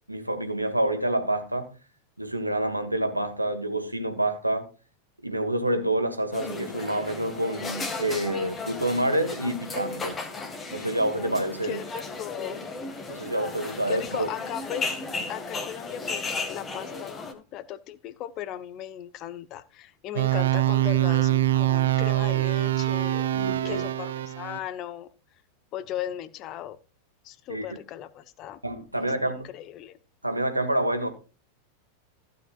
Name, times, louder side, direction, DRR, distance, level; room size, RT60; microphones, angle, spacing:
voice 1, 0.1-1.7 2.2-4.7 5.2-10.2 10.7-11.8 13.1-14.3 23.3-23.8 27.5-27.7 28.6-29.5 30.2-31.1, right 1 dB, 85° right, 1.6 m, -27 dB
sound 1, 6.3-17.3, left 3 dB, 20° left, 1.9 m, -35 dB
voice 2, 11.6-12.6 13.9-15.0 15.3-23.3 23.6-25.1 25.7-26.8 27.2-28.6 29.0-30.0, left 12 dB, 35° left, 0.9 m, -37 dB
sound 2, 20.2-24.6, right 14 dB, 60° right, 0.6 m, -24 dB
15.5 x 8.4 x 2.5 m
figure-of-eight pair, 90°, 0 cm